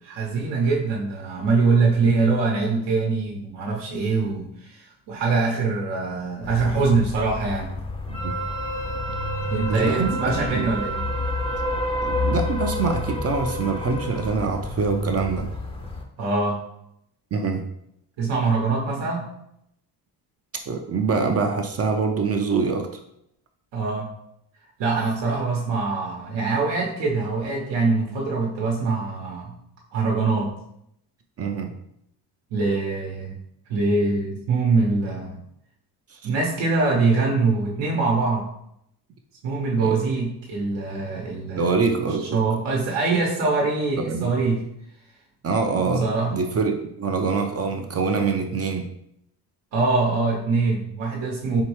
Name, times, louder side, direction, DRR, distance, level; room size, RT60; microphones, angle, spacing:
voice 1, 0.0-7.7 9.5-11.0 16.2-16.6 18.2-19.2 23.7-24.1 24.8-29.5 29.9-30.5 32.5-33.4 33.7-35.4 36.2-38.5 39.4-41.7 42.3-44.6 46.0-46.4 49.7-51.6, right 3 dB, 85° right, -2 dB, 0.9 m, -23 dB
sound 1, 6.4-16.0, left 2 dB, 15° left, 0.5 m, -29 dB
Wind instrument woodwind instrument, 8.1-11.9, right 6 dB, 45° left, 0.8 m, -34 dB
voice 2, 8.1-8.4 9.7-10.7 12.0-15.5 17.3-17.7 20.7-22.9 31.4-31.7 36.1-36.2 39.8-40.0 41.6-42.4 44.1-44.4 45.4-48.9, right 4 dB, 35° right, 4 dB, 0.5 m, -25 dB
4.5 x 3.0 x 3.1 m, 0.76 s
cardioid pair, 105°, 42 cm